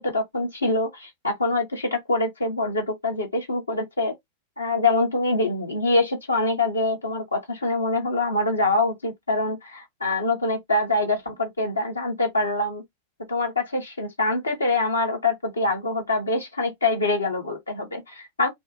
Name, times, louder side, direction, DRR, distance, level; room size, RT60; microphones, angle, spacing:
voice 1, 0.0-4.1 4.6-12.8 13.3-18.5, left 2 dB, 75° left, 0.7 m, -25 dB
2.6 x 2.1 x 2.7 m
figure-of-eight pair, 90°, 0 cm